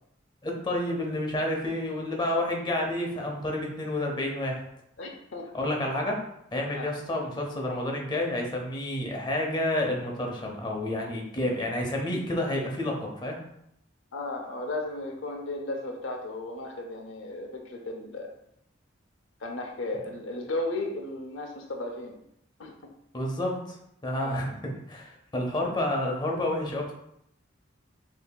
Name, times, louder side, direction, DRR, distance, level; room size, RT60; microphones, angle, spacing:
voice 1, 0.4-4.7 5.5-13.4 23.1-23.8 24.0-26.9, left 1 dB, 25° left, 0 dB, 0.6 m, -30 dB
voice 2, 5.0-5.5 6.7-6.9 14.1-18.3 19.4-22.2 22.6-22.7 24.2-24.4, left 2 dB, 75° left, 3 dB, 0.7 m, -35 dB
6.8 x 2.7 x 2.2 m, 0.76 s
head